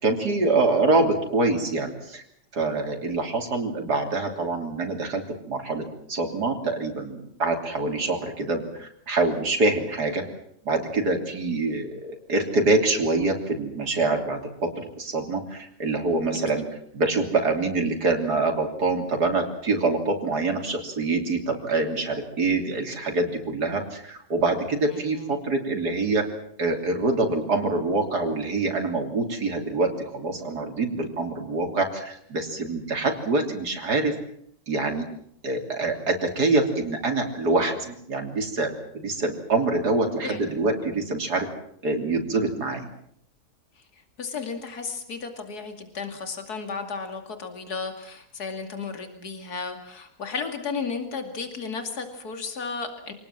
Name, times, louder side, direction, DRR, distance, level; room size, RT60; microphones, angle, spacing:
voice 1, 0.0-2.2 2.5-10.2 10.7-16.6 16.9-26.3 26.6-34.1 34.7-35.1 35.4-41.5 41.8-42.9, right 3 dB, 80° right, 3 dB, 3.7 m, -25 dB
voice 2, 24.9-25.4 40.2-40.4 43.8-53.1, left 5 dB, 75° left, 6 dB, 3.0 m, -34 dB
26.5 x 19.5 x 7.5 m, 0.67 s
omnidirectional pair, 1.7 m